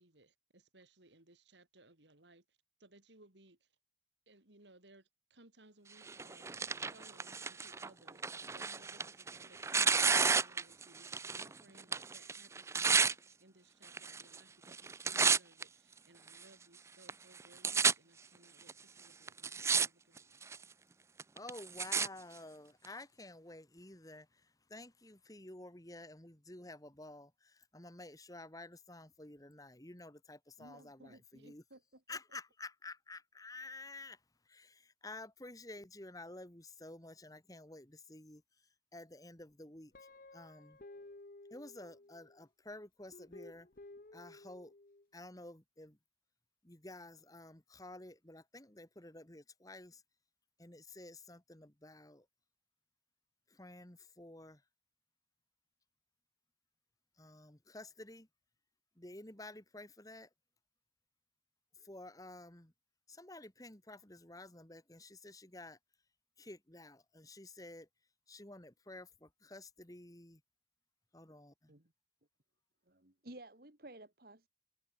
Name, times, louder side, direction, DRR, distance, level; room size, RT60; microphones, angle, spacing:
voice 1, 0.0-3.7 4.3-6.5 6.8-20.5 30.6-32.4, right 2 dB, 85° right, 3.8 m, -63 dB
Tearing, 6.1-11.5 11.8-13.1 13.9-14.4 14.7-15.6 16.3-16.4 17.1-17.2 17.4-17.9 18.7-18.8 19.3-19.9 20.2-20.6 21.2-22.1 22.8-22.9, right 5 dB, 15° right, 0.4 m, -32 dB
voice 2, 21.3-31.6 32.1-40.8 41.5-43.7 44.1-44.7 45.1-46.0 46.6-50.0 50.6-52.3 53.5-54.6 57.2-58.3 59.0-60.3 61.8-62.7 63.1-65.8 66.4-67.9 68.3-70.4 71.1-71.7, left 2 dB, 20° left, 2.0 m, -51 dB
Guitar, 39.9-42.4 43.1-45.1, left 2 dB, 50° left, 1.0 m, -55 dB
voice 3, 72.9-74.5, right 1 dB, 55° right, 2.6 m, -53 dB
head